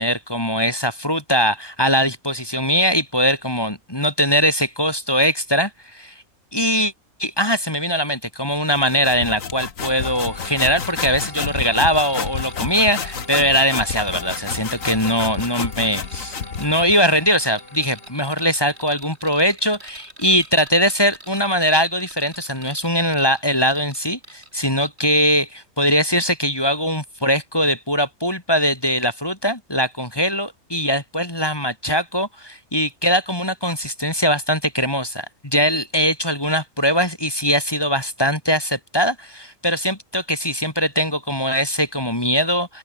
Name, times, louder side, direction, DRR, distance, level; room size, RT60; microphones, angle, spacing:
voice 1, 0.0-6.1 6.5-6.9 7.2-42.8, equal, 15° left, 2.5 m, -21 dB
sound 1, 8.7-17.3, left 6 dB, 65° left, 1.9 m, -30 dB
sound 2, 9.8-19.2, left 2 dB, 40° left, 3.8 m, -41 dB
sound 3, 9.9-24.5 24.8-25.1, right 1 dB, 45° right, 6.5 m, -44 dB
open air
omnidirectional pair, 1.6 m